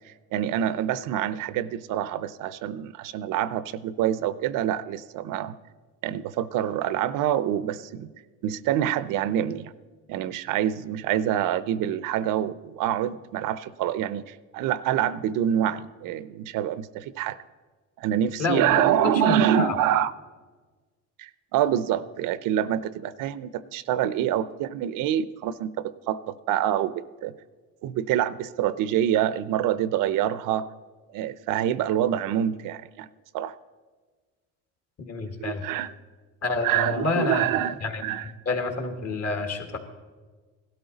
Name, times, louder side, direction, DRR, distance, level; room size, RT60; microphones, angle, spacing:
voice 1, 0.3-5.5 6.0-8.1 8.4-9.7 10.1-17.4 18.0-20.1 21.2-27.3 27.8-30.7 31.1-33.1 33.3-33.5 35.2-35.9 36.6-37.7 38.0-38.3, right 11 dB, 70° right, 16 dB, 0.6 m, -26 dB
voice 2, 18.4-19.8 35.0-35.6 36.4-37.5 37.8-38.0 38.5-39.8, left 3 dB, 50° left, 6 dB, 1.9 m, -28 dB
17.0 x 12.0 x 3.9 m, 1.4 s
cardioid pair, 105°, 33 cm